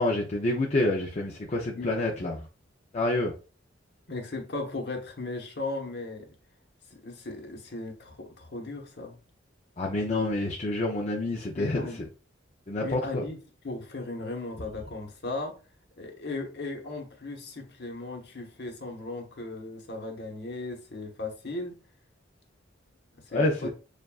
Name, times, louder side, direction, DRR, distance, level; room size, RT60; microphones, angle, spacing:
voice 1, 0.0-2.5 2.9-3.3 9.8-11.9 12.7-13.2 23.3-23.7, left 2 dB, 35° left, 0.6 m, -28 dB
voice 2, 4.1-6.3 6.9-9.2 11.6-12.0 12.8-13.4 13.6-15.6 16.0-21.8 23.1-23.7, left 2 dB, 60° left, 1.1 m, -37 dB
7.0 x 2.5 x 2.3 m
head